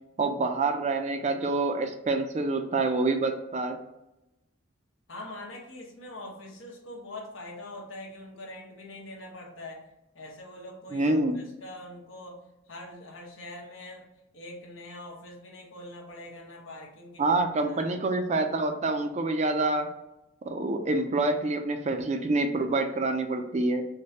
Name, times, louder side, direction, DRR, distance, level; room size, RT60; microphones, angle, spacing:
voice 1, 0.2-3.8 10.9-11.4 17.2-19.9 20.5-23.8, right 2 dB, 35° right, 6 dB, 0.4 m, -27 dB
voice 2, 5.1-9.8 10.1-12.4 12.7-14.1 14.3-17.9, left 1 dB, 75° left, 0 dB, 1.2 m, -43 dB
6.2 x 2.2 x 2.8 m, 0.92 s
head